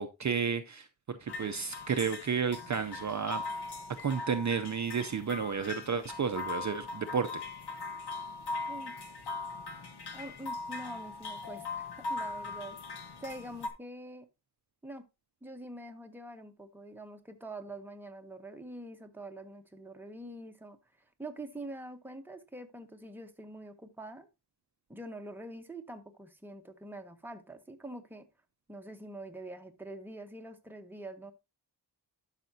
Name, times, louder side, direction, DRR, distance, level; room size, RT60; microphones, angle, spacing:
voice 1, 0.0-3.4 4.0-7.4, right 6 dB, 45° right, 0.5 m, -32 dB
sound 1, 1.3-13.7, left 3 dB, 70° left, 1.2 m, -40 dB
voice 2, 10.1-14.3 14.8-15.0 15.4-20.8 21.2-24.3 24.9-28.3 28.7-31.3, right 1 dB, 5° right, 0.9 m, -45 dB
12.0 x 5.8 x 2.7 m
wide cardioid pair, 130°, 41 cm